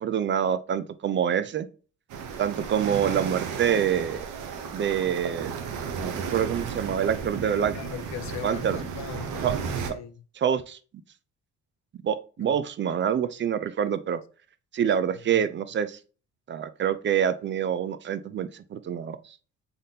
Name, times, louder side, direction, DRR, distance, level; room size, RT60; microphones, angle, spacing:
voice 1, 0.0-1.7 2.4-4.3 4.7-5.5 6.0-7.7 8.4-8.8 9.4-9.5 9.9-10.0 10.4-10.8 12.0-14.2 14.7-16.0 16.5-19.2, right 8 dB, 40° right, 0.4 m, -26 dB
sound 1, 2.1-9.9, right 6 dB, 85° right, 0.8 m, -34 dB
voice 2, 7.4-9.5 9.9-10.1 12.4-12.5 15.3-15.4, left 11 dB, 65° left, 0.5 m, -39 dB
4.0 x 3.5 x 2.7 m
cardioid pair, 90°, 30 cm